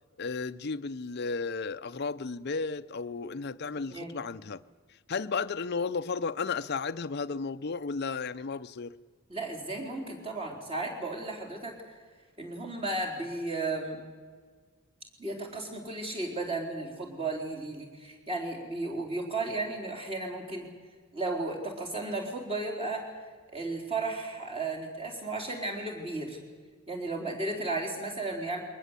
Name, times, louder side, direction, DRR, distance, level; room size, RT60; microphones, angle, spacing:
voice 1, 0.2-4.6 5.1-9.0, left 4 dB, 50° left, 0.6 m, -33 dB
voice 2, 3.9-4.2 9.3-11.7 12.4-14.0 15.2-20.7 21.1-23.1 23.5-26.4 26.9-28.6, right 2 dB, 25° right, 4.1 m, -34 dB
23.0 x 19.5 x 8.2 m
head